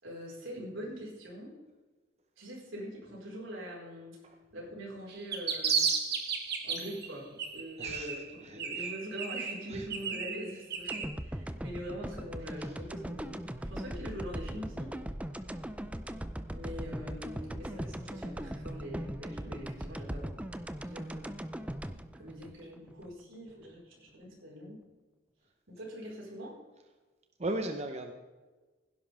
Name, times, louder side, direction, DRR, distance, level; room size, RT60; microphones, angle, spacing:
voice 1, 0.0-1.6 2.4-4.2 4.5-5.9 6.6-15.0 16.5-21.3 22.1-24.8 25.7-26.6, equal, 90° right, -3 dB, 4.8 m, -43 dB
sound 1, 5.1-7.1 7.4-8.3 8.6-11.1, right 6 dB, 55° right, 1.7 m, -33 dB
voice 2, 7.8-8.1 8.4-8.9 9.7-9.9 27.4-28.1, right 1 dB, 35° right, 5 dB, 0.9 m, -37 dB
sound 2, 10.9-23.1 23.5-23.6, right 1 dB, 5° right, 0.5 m, -39 dB
16.5 x 11.0 x 3.6 m, 1.3 s
head